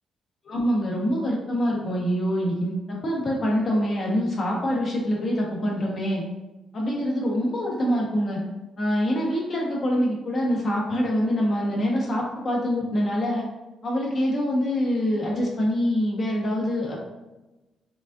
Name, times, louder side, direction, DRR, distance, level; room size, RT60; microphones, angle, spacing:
voice 1, 0.4-6.2 6.7-8.4 8.8-13.4 13.8-17.0, equal, 45° left, -3 dB, 1.2 m, -25 dB
5.1 x 2.4 x 2.6 m, 1.0 s
cardioid pair, 90°, 0 cm